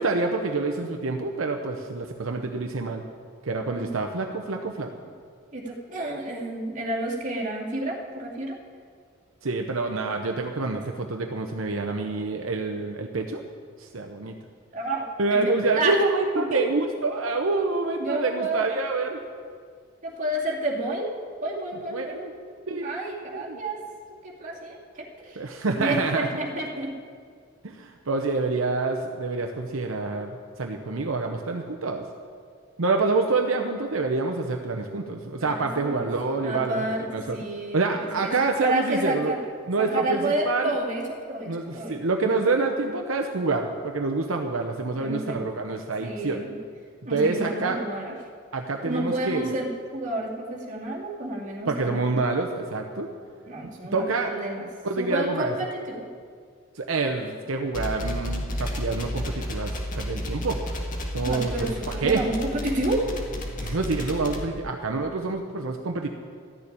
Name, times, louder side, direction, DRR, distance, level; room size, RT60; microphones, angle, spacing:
voice 1, 0.0-3.0 3.4-4.9 9.4-13.4 13.8-14.4 15.2-19.2 21.9-22.3 22.7-22.9 23.3-23.6 25.4-26.3 27.6-30.3 30.6-32.0 32.8-36.8 37.1-37.4 37.7-39.3 39.7-40.7 41.5-46.4 47.1-47.8 48.5-49.5 51.7-53.1 53.9-54.3 54.8-55.5 56.7-60.8 61.1-61.7 62.0-62.2 63.6-66.1, right 3 dB, 75° right, 3 dB, 0.8 m, -27 dB
voice 2, 5.5-8.6 14.7-16.0 16.3-16.6 18.0-18.7 20.0-21.1 21.4-22.2 22.8-23.8 24.2-25.4 25.8-26.9 35.4-36.1 36.4-37.0 37.3-38.3 38.6-39.4 39.8-42.0 45.0-45.4 46.0-46.6 47.0-48.1 48.8-49.7 49.9-52.1 53.5-54.7 55.0-56.1 61.2-63.1 63.6-63.8, right 1 dB, 40° right, -3 dB, 2.3 m, -30 dB
sound 1, 57.7-64.4, left 1 dB, 40° left, 1.8 m, -32 dB
13.5 x 7.0 x 9.9 m, 2.1 s
head